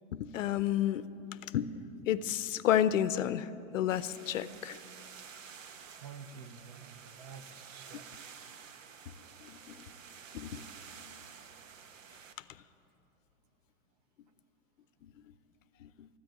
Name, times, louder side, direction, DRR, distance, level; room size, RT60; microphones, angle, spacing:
voice 1, 0.1-1.1 1.5-4.8 9.4-9.9 10.3-10.6 15.0-15.1 15.8-16.1, left 11 dB, 80° left, 15 dB, 0.7 m, -31 dB
sound 1, 3.9-12.3, right 7 dB, 75° right, 1.3 m, -51 dB
voice 2, 5.9-8.1, right 6 dB, 30° right, 10 dB, 0.6 m, -50 dB
13.5 x 10.0 x 8.9 m, 2.9 s
supercardioid pair, 170°, 39 cm